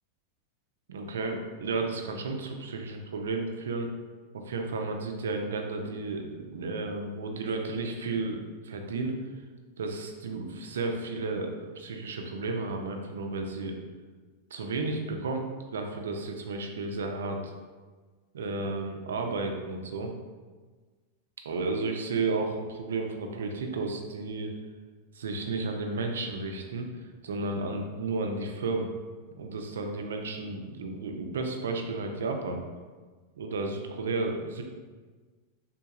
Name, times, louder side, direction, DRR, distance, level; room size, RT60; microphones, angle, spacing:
voice 1, 0.9-3.9 4.3-8.4 8.6-9.1 9.8-13.8 14.5-15.4 15.7-17.5 18.3-20.1 21.4-24.5 25.1-26.9 27.2-28.9 29.4-32.6 33.4-34.6, right 3 dB, 85° right, 3 dB, 0.4 m, -32 dB
3.6 x 2.9 x 2.4 m, 1.4 s
hypercardioid pair, 115°, 0 cm